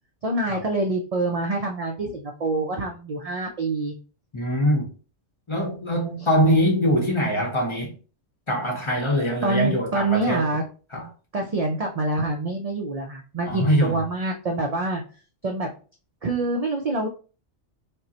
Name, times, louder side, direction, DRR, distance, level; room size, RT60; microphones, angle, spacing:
voice 1, 0.2-3.9 9.4-10.6 11.3-15.0 15.4-15.7 16.2-17.1, right 2 dB, 55° right, 0.4 m, -26 dB
voice 2, 4.3-4.9 5.5-7.9 8.5-10.4 10.9-11.1 13.5-14.0, equal, 30° left, 0.7 m, -23 dB
5.1 x 2.1 x 2.8 m
omnidirectional pair, 1.2 m